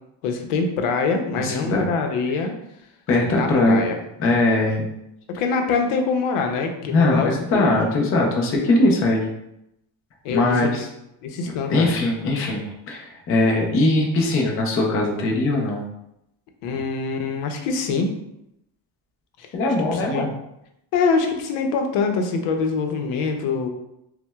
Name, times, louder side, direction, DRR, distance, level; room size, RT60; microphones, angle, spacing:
voice 1, 0.2-2.5 3.3-4.0 5.3-7.7 10.2-10.7 11.2-11.9 16.6-18.1 19.4-19.5 19.9-20.3 20.9-23.7, left 4 dB, 85° left, 4 dB, 0.7 m, -24 dB
voice 2, 1.4-1.9 3.1-3.8 4.2-4.9 6.8-9.3 10.3-10.9 11.4-15.8 19.5-20.3, left 2 dB, 30° left, -1 dB, 0.4 m, -20 dB
5.7 x 2.1 x 2.3 m, 0.82 s
cardioid pair, 175°, 50 cm